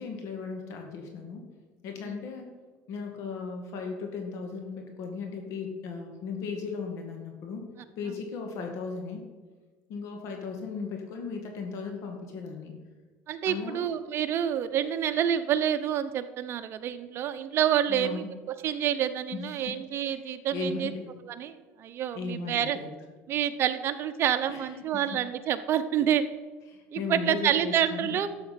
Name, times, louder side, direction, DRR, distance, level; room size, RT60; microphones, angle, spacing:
voice 1, 0.0-1.4 1.8-2.5 2.9-7.7 8.0-9.2 9.9-12.7 13.5-13.9 17.9-18.3 19.3-19.8 20.2-21.1 22.1-22.9 24.5-25.1 26.7-28.2, left 5 dB, 60° left, 3 dB, 2.0 m, -36 dB
voice 2, 13.3-18.2 18.6-20.9 21.2-22.8 23.3-26.2 26.9-28.3, right 10 dB, 50° right, 9 dB, 0.9 m, -28 dB
12.0 x 7.5 x 5.9 m, 1.3 s
cardioid pair, 120°, 5 cm